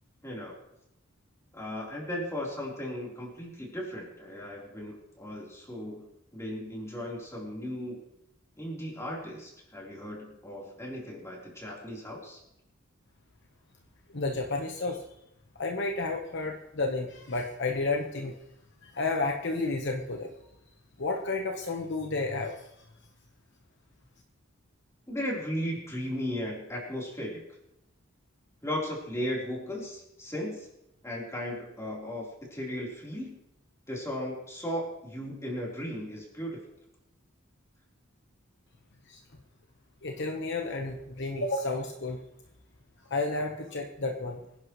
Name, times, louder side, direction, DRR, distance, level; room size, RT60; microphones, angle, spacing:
voice 1, 0.2-0.6 1.5-8.0 8.6-12.4 25.1-27.4 28.6-30.7 31.0-33.4 33.9-36.6, equal, 15° left, -4 dB, 3.9 m, -36 dB
voice 2, 14.1-15.0 15.5-18.4 18.8-20.3 21.0-22.6 39.1-39.2 40.0-42.2 43.1-44.4, left 3 dB, 55° left, 2 dB, 1.2 m, -31 dB
25.0 x 11.0 x 3.2 m, 0.85 s
head